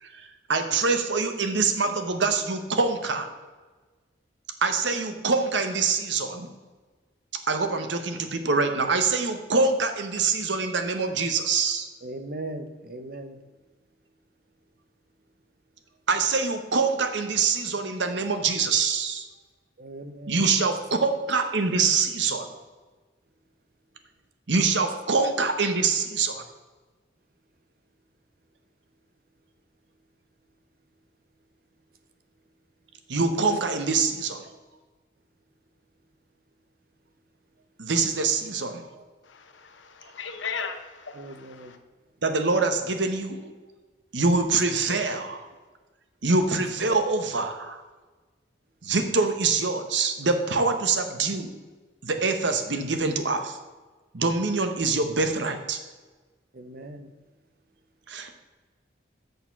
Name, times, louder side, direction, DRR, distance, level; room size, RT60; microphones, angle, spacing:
voice 1, 0.0-3.3 4.6-6.5 7.5-11.9 16.1-19.3 20.3-22.6 24.5-26.4 33.1-34.5 37.8-39.0 42.2-43.5 44.1-45.5 46.2-47.8 48.8-51.5 52.0-53.6 54.1-55.8 58.1-58.3, right 4 dB, 75° right, 1.0 m, -25 dB
voice 2, 12.0-13.4 19.8-20.5 41.1-41.7 56.5-57.1, right 1 dB, 50° right, 0.8 m, -39 dB
voice 3, 39.2-41.8, left 6 dB, 85° left, 1.0 m, -37 dB
6.6 x 6.5 x 5.8 m
head